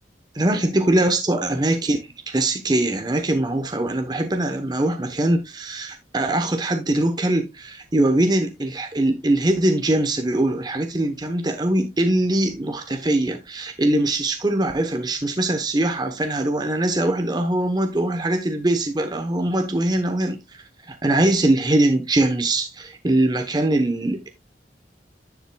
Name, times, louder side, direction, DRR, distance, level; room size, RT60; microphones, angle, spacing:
voice 1, 0.3-2.0 2.3-20.4 20.9-24.3, right 1 dB, 25° right, 0.9 m, -22 dB
10.5 x 7.2 x 2.3 m
head